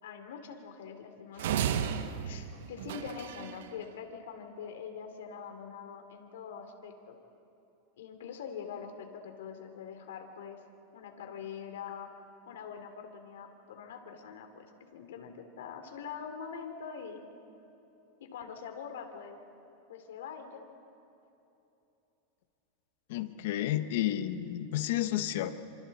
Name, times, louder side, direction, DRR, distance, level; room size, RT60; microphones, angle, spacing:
voice 1, 0.0-1.9 2.2-7.2 8.0-10.6 10.9-12.1 12.5-14.6 14.9-17.2 18.2-19.4 19.9-20.6, left 6 dB, 85° left, 5 dB, 3.1 m, -44 dB
sound 1, 1.4-3.6, right 9 dB, 75° right, 1.2 m, -33 dB
voice 2, 23.1-25.5, left 13 dB, 65° left, 9 dB, 1.3 m, -31 dB
29.5 x 26.0 x 4.3 m, 2.9 s
supercardioid pair, 150°, 0 cm